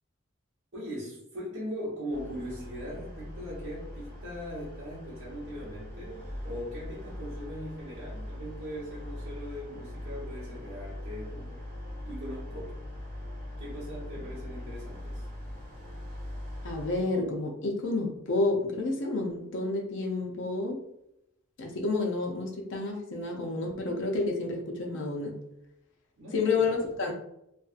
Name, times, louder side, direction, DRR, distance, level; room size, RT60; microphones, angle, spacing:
voice 1, 0.7-11.6 12.1-12.8 13.6-15.3 26.2-26.7, equal, 85° right, -9 dB, 1.0 m, -40 dB
sound 1, 2.1-16.9, left 1 dB, 40° right, 1.1 m, -41 dB
voice 2, 16.6-20.8 21.6-25.4 26.3-27.1, left 3 dB, 65° left, 0 dB, 0.5 m, -30 dB
2.5 x 2.3 x 2.5 m, 0.81 s
head